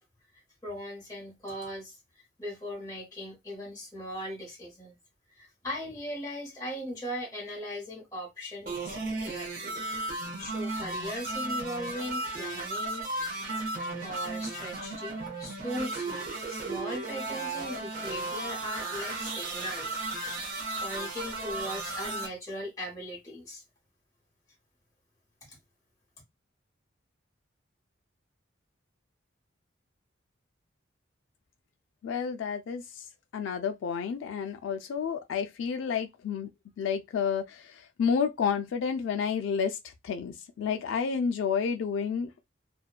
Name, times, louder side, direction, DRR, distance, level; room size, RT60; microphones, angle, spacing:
voice 1, 0.6-2.0 2.4-5.0 5.3-9.8 10.4-13.4 14.0-23.6 25.4-25.6, equal, 15° left, 0.9 m, -39 dB
sound 1, 8.7-22.3, right 2 dB, 45° right, 0.7 m, -35 dB
voice 2, 32.0-33.1 33.3-36.5 36.8-42.5, left 6 dB, 70° left, 0.3 m, -30 dB
2.6 x 2.2 x 2.2 m
head